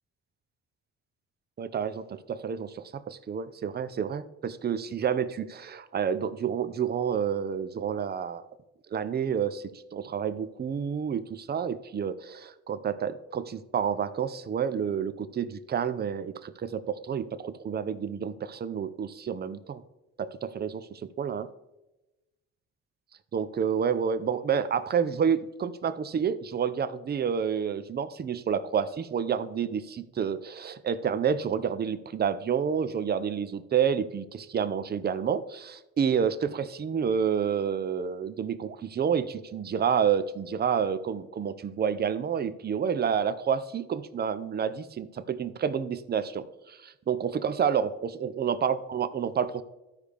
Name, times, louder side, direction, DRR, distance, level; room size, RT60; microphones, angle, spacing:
voice 1, 1.6-8.4 8.9-9.6 9.9-19.8 20.2-21.5 23.3-49.6, right 7 dB, 35° right, 14 dB, 0.5 m, -29 dB
13.0 x 4.9 x 3.4 m, 1.0 s
cardioid pair, 90°, 30 cm